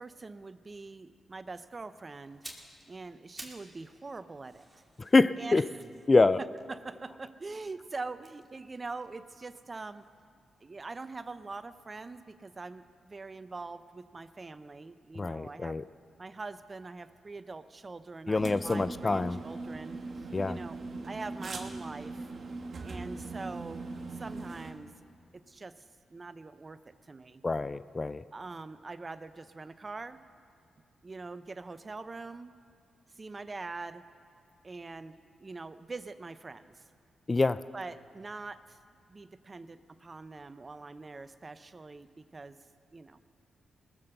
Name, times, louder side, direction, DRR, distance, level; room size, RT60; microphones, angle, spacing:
voice 1, 0.0-2.5 2.9-4.7 5.4-6.0 6.4-10.1 10.6-15.8 16.2-20.8 21.0-22.3 22.8-24.9 25.3-27.4 28.3-30.2 31.0-32.5 33.2-34.0 34.6-36.8 37.7-38.8 39.1-42.6 42.9-43.2, right 3 dB, 35° right, 13 dB, 0.6 m, -43 dB
sound 1, 2.2-3.8 4.1-7.3 8.1-10.2 10.4-10.6, right 1 dB, 20° right, 2.4 m, -52 dB
voice 2, 5.0-5.6 6.1-6.4 15.2-15.8 18.3-19.4 20.3-20.6 27.4-28.2 37.3-37.6, left 3 dB, 35° left, 15 dB, 0.3 m, -25 dB
sound 2, 18.3-24.7, right 3 dB, 55° right, 1.5 m, -40 dB
19.5 x 7.7 x 6.7 m, 2.4 s
cardioid pair, 60°, 0 cm